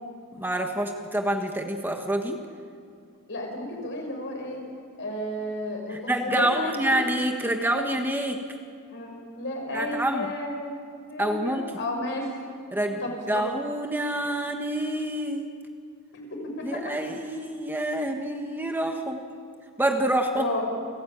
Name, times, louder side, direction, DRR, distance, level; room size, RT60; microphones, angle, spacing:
voice 1, 0.3-2.4 5.9-8.4 9.7-10.3 11.2-11.7 12.7-13.0 13.3-15.5 16.6-19.2 19.8-20.5, right 1 dB, 10° right, 3 dB, 1.3 m, -27 dB
voice 2, 3.3-4.6 5.0-6.9 8.9-12.2 13.0-13.5 16.1-16.9 20.4-20.7, left 1 dB, 55° left, 1 dB, 6.2 m, -33 dB
30.0 x 14.0 x 8.8 m, 2.3 s
head